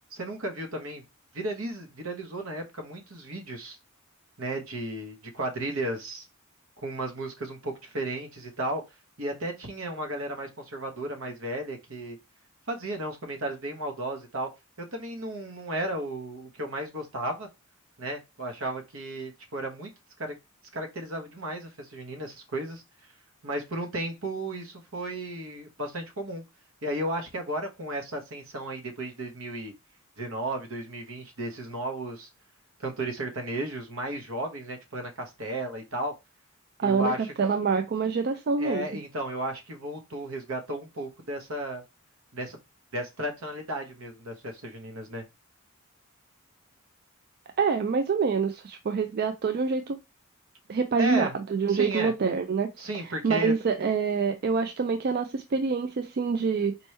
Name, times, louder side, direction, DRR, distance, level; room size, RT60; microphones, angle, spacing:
voice 1, 0.1-1.0 1.3-3.8 4.4-6.3 6.8-8.8 9.2-12.2 12.7-14.5 14.9-17.5 18.0-19.9 20.2-20.3 20.7-22.8 23.4-26.4 26.8-29.7 30.2-32.3 32.8-36.1 36.8-37.3 38.6-41.8 42.3-42.6 42.9-45.2 51.0-51.3 51.7-52.1 52.8-53.5, right 1 dB, 70° right, 1.1 m, -34 dB
voice 2, 36.8-37.1 37.4-38.9 47.6-50.0 50.7-52.9 53.2-56.8, right 5 dB, 45° right, 0.4 m, -26 dB
4.3 x 3.0 x 3.2 m
head